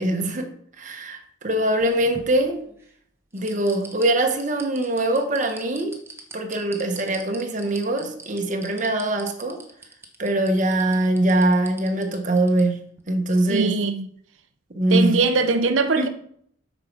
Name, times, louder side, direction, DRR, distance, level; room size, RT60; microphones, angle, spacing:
voice 1, 0.0-2.6 3.3-6.0 6.3-9.6 10.2-13.8 14.7-15.3 16.0-16.1, right 1 dB, 40° right, 1.2 m, -23 dB
sound 1, 1.6-2.9 3.4-12.6 13.0-13.1, right 2 dB, 15° right, 1.2 m, -43 dB
voice 2, 13.5-14.1 14.9-16.1, right 4 dB, 90° right, 0.6 m, -21 dB
8.5 x 5.3 x 6.1 m
head